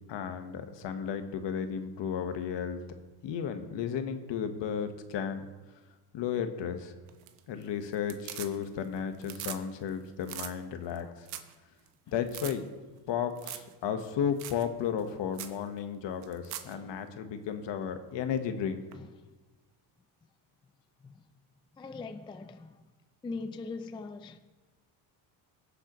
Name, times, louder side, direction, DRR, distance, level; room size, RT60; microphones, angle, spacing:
voice 1, 0.1-2.8 3.2-5.5 6.1-6.9 7.5-11.3 12.1-12.6 13.1-18.8, left 8 dB, 60° left, 1.3 m, -34 dB
sound 1, 7.1-7.6 7.9-8.9 9.1-9.6 9.9-10.0 10.2-10.5 11.0-11.1 11.3-11.5 11.9-12.0 12.3-12.5 13.4-13.7 14.0-14.1 14.4-14.6 15.0-15.1 15.3-15.6 16.2-16.7 18.9-19.0, right 12 dB, 85° right, 1.1 m, -41 dB
voice 2, 21.8-22.7 23.2-24.4, left 3 dB, 10° left, 0.3 m, -41 dB
21.0 x 7.8 x 3.1 m
cardioid pair, 105°, 50 cm